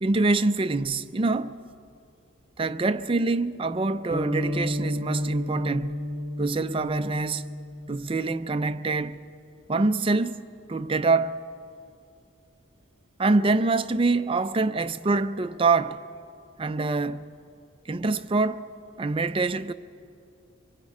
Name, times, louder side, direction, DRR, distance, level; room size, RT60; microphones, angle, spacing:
voice 1, 0.0-1.6 2.6-6.1 6.4-7.5 7.9-9.2 9.7-10.4 10.7-11.3 13.2-16.0 16.6-17.2 17.9-18.7 19.0-19.7, right 3 dB, 25° right, 0.5 m, -25 dB
sound 1, 4.1-8.4, left 1 dB, 50° right, 2.2 m, -31 dB
25.0 x 23.0 x 4.9 m
head